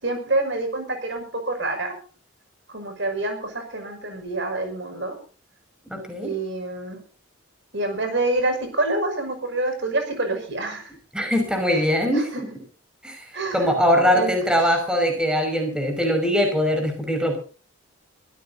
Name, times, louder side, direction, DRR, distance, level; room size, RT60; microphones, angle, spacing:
voice 1, 0.0-1.9 2.7-5.2 6.2-7.0 7.7-10.9 12.1-12.2 13.3-13.7 14.1-14.3, right 2 dB, 55° right, 6 dB, 6.2 m, -27 dB
voice 2, 5.9-6.3 11.1-12.3 13.0-17.4, equal, 5° right, 4 dB, 5.8 m, -22 dB
25.0 x 16.0 x 2.7 m, 0.39 s
head